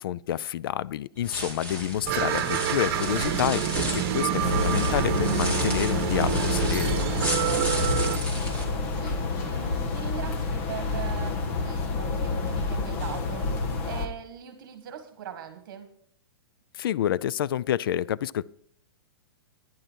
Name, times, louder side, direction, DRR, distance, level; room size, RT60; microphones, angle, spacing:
voice 1, 0.0-7.0 16.7-18.4, left 11 dB, 60° left, 0.4 m, -28 dB
sound 1, 1.2-8.6, equal, 10° left, 2.2 m, -34 dB
voice 2, 1.7-2.1 7.2-7.9 8.9-15.9, right 8 dB, 55° right, 1.5 m, -41 dB
sound 2, 2.1-8.2, right 8 dB, 35° right, 1.7 m, -27 dB
sound 3, 4.4-14.1, left 3 dB, 40° left, 1.5 m, -28 dB
12.0 x 11.0 x 4.5 m
hypercardioid pair, 155°, 13 cm